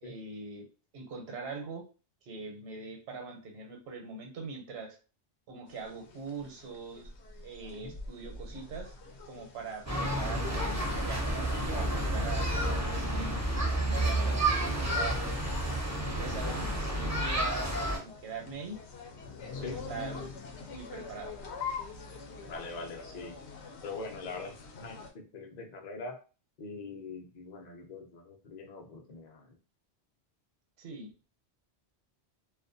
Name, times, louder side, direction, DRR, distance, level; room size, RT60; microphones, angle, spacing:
voice 1, 0.0-0.7 0.9-1.8 2.2-5.0 5.5-7.1 7.4-9.0 9.3-13.4 13.9-15.3 15.9-17.7 18.0-18.8 19.6-20.3 20.5-21.4 30.8-31.1, right 4 dB, 70° right, 2 dB, 0.9 m, -42 dB
sound 1, 5.7-25.1, left 4 dB, 85° left, 0.9 m, -45 dB
sound 2, 9.9-18.0, right 1 dB, 25° right, 0.4 m, -30 dB
voice 2, 22.5-23.4 23.8-26.2 26.6-29.6, left 3 dB, 50° left, 2 dB, 0.6 m, -43 dB
2.4 x 2.2 x 2.5 m, 0.34 s
omnidirectional pair, 1.1 m